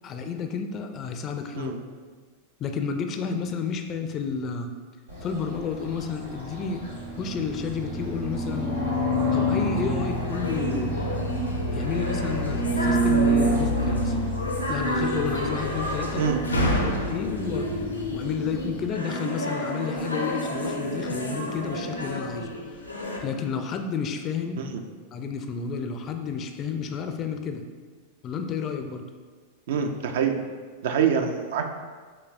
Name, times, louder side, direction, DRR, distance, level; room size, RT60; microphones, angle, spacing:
voice 1, 0.0-1.7 2.6-4.7 5.2-6.8 7.2-8.7 9.3-11.0 11.7-14.2 14.7-16.2 16.8-17.7 18.1-22.5 23.2-24.6 25.1-27.6 28.2-29.0, left 6 dB, 30° left, 6 dB, 0.4 m, -31 dB
sound 1, 5.1-18.9, right 1 dB, 90° right, 1.3 m, -28 dB
sound 2, 10.1-23.2, equal, 85° left, 0.6 m, -30 dB
voice 2, 29.7-30.4 30.8-31.7, right 7 dB, 55° right, 5 dB, 0.4 m, -25 dB
5.7 x 3.2 x 2.4 m, 1.5 s
figure-of-eight pair, 90°, 0 cm